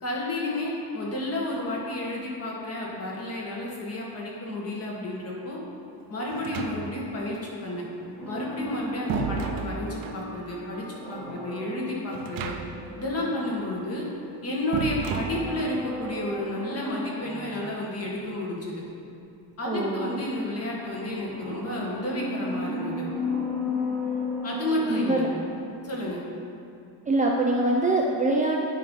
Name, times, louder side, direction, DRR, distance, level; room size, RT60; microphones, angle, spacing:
voice 1, 0.0-5.6 6.1-7.9 8.3-12.6 13.0-14.1 14.4-18.8 19.6-23.1 24.4-25.2 25.8-26.2, left 1 dB, 35° left, -3 dB, 1.7 m, -31 dB
sound 1, 6.3-7.2 8.4-10.3 12.1-12.9 13.2-13.3 14.7-15.8, right 6 dB, 55° right, 0.7 m, -33 dB
sound 2, 8.0-13.7 14.8-17.8 20.6-25.8 26.1-26.2, left 2 dB, ahead, 1.5 m, -35 dB
voice 2, 19.6-20.2 24.9-25.3 27.1-28.6, right 2 dB, 20° right, -2 dB, 0.4 m, -24 dB
9.4 x 5.3 x 5.5 m, 2.6 s
cardioid pair, 165°, 40 cm